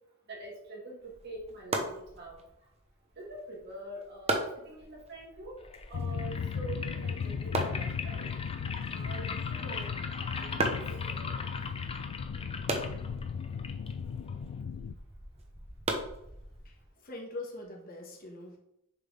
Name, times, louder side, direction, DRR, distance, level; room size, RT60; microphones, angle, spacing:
voice 1, 0.3-2.4 3.2-5.6 5.9-8.3 8.9-11.6, right 2 dB, 50° right, -2 dB, 2.2 m, -45 dB
sound 1, 1.0-16.9, right 2 dB, 30° right, 1.0 m, -39 dB
sound 2, 5.6-14.6, left 5 dB, 25° left, 0.6 m, -42 dB
sound 3, 5.9-14.9, left 6 dB, 70° left, 0.3 m, -36 dB
voice 2, 16.6-18.6, left 2 dB, 40° left, 1 dB, 1.4 m, -43 dB
6.6 x 4.2 x 5.3 m, 0.80 s
head